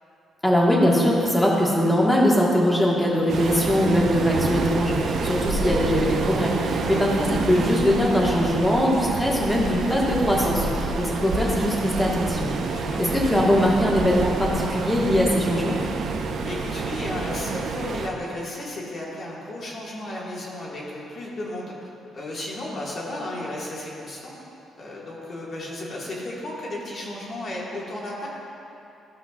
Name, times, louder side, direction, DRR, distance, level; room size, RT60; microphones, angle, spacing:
voice 1, 0.4-12.5 13.0-15.8, equal, 10° left, -4 dB, 1.6 m, -21 dB
Waves surf, 3.3-18.1, right 4 dB, 65° right, 0.6 m, -28 dB
voice 2, 6.6-7.0 12.6-13.0 16.5-21.9 22.1-24.3 24.8-28.3, left 1 dB, 50° left, -5 dB, 1.8 m, -34 dB
14.0 x 5.7 x 2.5 m, 2.8 s
cardioid pair, 90°, 0 cm